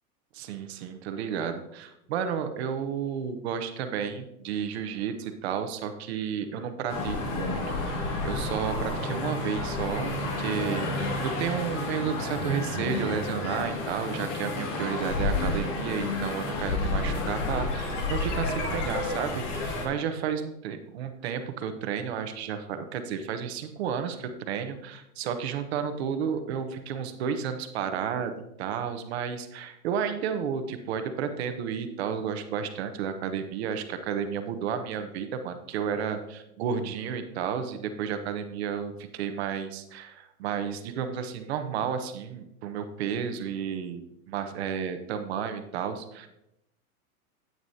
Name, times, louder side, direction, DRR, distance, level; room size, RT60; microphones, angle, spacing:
voice 1, 0.3-28.3 28.6-46.3, right 7 dB, 45° right, 9 dB, 0.9 m, -32 dB
sound 1, 6.9-19.9, left 2 dB, 50° left, 2.3 m, -30 dB
9.5 x 9.0 x 2.8 m, 0.86 s
hypercardioid pair, 155°, 46 cm